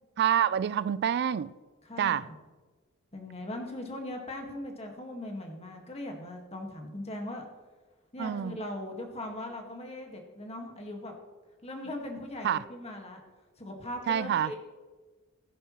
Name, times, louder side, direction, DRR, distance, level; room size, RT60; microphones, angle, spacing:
voice 1, 0.2-1.5 2.0-2.2 8.2-8.6 12.4-12.6 14.1-14.5, right 9 dB, 50° right, 0.3 m, -27 dB
voice 2, 1.8-2.4 3.1-7.5 8.1-11.1 11.6-13.2 13.6-14.6, left 1 dB, 30° left, 1.8 m, -39 dB
14.5 x 10.0 x 3.1 m
head